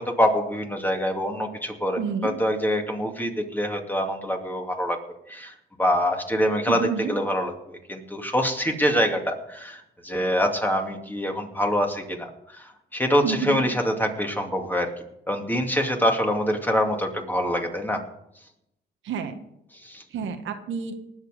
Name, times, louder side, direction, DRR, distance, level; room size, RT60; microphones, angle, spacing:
voice 1, 0.0-5.0 5.3-5.5 5.8-14.9 15.3-18.0 19.8-20.0, equal, 10° left, 3 dB, 2.4 m, -25 dB
voice 2, 2.0-2.3 6.7-7.1 13.2-13.6 19.0-19.4 20.1-20.9, right 6 dB, 75° right, 6 dB, 1.5 m, -29 dB
19.5 x 7.3 x 5.1 m, 0.78 s
cardioid pair, 90°, 20 cm